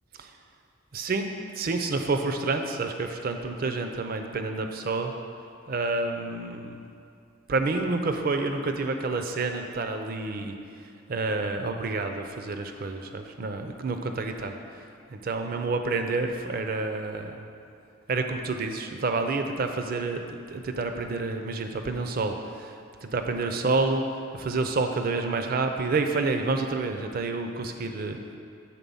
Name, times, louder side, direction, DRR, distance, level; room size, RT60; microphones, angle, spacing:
voice 1, 0.9-1.3 1.6-5.1 5.7-6.8 7.5-10.5 11.1-14.8 15.1-17.5 18.1-22.8 23.0-28.2, right 3 dB, 45° right, 5 dB, 0.5 m, -29 dB
7.4 x 3.7 x 5.4 m, 2.4 s
head